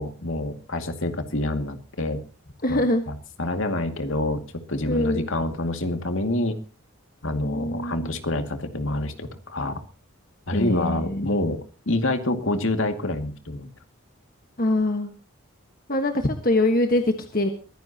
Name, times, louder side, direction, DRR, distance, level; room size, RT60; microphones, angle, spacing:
voice 1, 0.0-2.2 2.7-6.6 7.2-9.8 10.5-11.6 11.9-13.7, left 1 dB, 60° left, 6 dB, 2.3 m, -27 dB
voice 2, 2.6-3.0 4.8-5.3 7.4-8.2 10.5-11.3 14.6-15.1 15.9-17.5, left 1 dB, 40° left, 5 dB, 1.4 m, -24 dB
23.0 x 15.5 x 2.9 m, 0.35 s
head